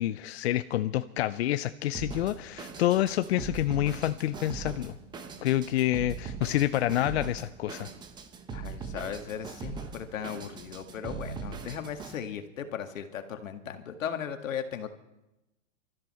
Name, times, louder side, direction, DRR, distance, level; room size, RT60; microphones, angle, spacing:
voice 1, 0.0-4.9 5.4-7.9, left 13 dB, 55° left, 12 dB, 0.6 m, -28 dB
Drum kit, 1.9-12.2, right 5 dB, 10° right, 0.9 m, -41 dB
voice 2, 8.5-15.0, left 8 dB, 80° left, 7 dB, 2.0 m, -37 dB
24.0 x 14.0 x 4.3 m, 0.96 s
hypercardioid pair, 150°, 39 cm